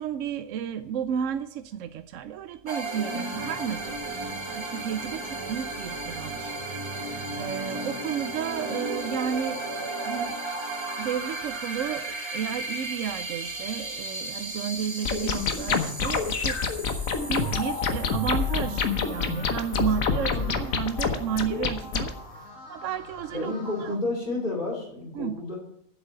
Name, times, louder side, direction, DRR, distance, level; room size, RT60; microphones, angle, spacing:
voice 1, 0.0-6.5 7.0-10.4 11.0-16.6 16.9-22.1 22.7-23.5 23.8-23.9 25.2-25.4, right 8 dB, 70° right, 10 dB, 0.9 m, -32 dB
sound 1, 2.7-21.1, right 2 dB, 20° right, 1.2 m, -35 dB
sound 2, 15.1-22.1, left 6 dB, 85° left, 1.5 m, -27 dB
sound 3, 17.1-23.9, left 2 dB, 70° left, 2.6 m, -44 dB
voice 2, 19.7-20.6 23.3-25.5, left 2 dB, 35° left, -8 dB, 3.2 m, -32 dB
8.1 x 7.6 x 8.8 m, 0.74 s
omnidirectional pair, 1.4 m